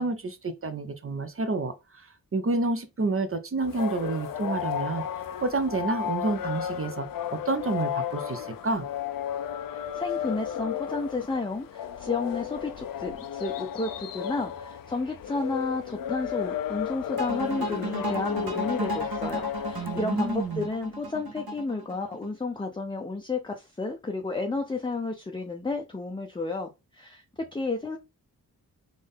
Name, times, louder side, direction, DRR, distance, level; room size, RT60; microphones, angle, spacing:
voice 1, 0.0-2.1 2.3-5.1 5.4-8.9 19.8-20.7, right 3 dB, 35° right, 0.7 m, -29 dB
sound 1, 3.6-20.6, left 9 dB, 65° left, 0.5 m, -34 dB
voice 2, 9.7-26.7 26.9-27.2 27.5-28.0, left 3 dB, 15° left, 0.6 m, -32 dB
sound 2, 17.2-22.3, right 2 dB, 75° right, 1.6 m, -34 dB
3.7 x 2.6 x 3.5 m
cardioid pair, 80°, 37 cm